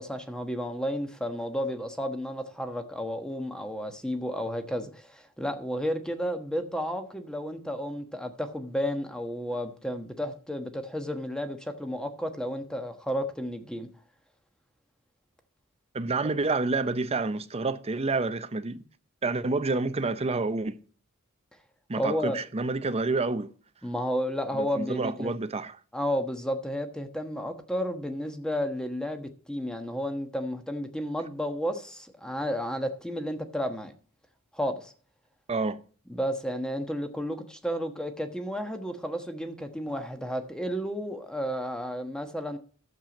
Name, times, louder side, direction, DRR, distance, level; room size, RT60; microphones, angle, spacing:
voice 1, 0.0-13.9 22.0-22.4 23.8-25.3 25.9-33.9 34.5-34.9 36.1-42.6, equal, 5° left, 1.2 m, -32 dB
voice 2, 15.9-18.8 19.2-20.8 21.9-23.5 24.5-25.8 35.5-35.8, right 3 dB, 30° right, 0.6 m, -28 dB
11.5 x 7.6 x 5.2 m
head